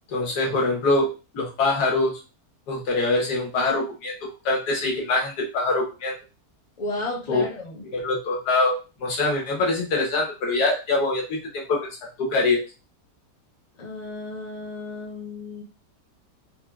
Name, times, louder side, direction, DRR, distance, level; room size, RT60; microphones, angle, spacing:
voice 1, 0.1-2.1 2.7-6.1 7.3-7.4 7.9-8.7 9.0-11.9 12.2-12.6, left 2 dB, 80° left, 0 dB, 1.5 m, -24 dB
voice 2, 6.8-7.9 13.8-15.6, left 2 dB, 35° left, -1 dB, 0.7 m, -33 dB
4.4 x 2.2 x 2.3 m, 0.31 s
omnidirectional pair, 1.7 m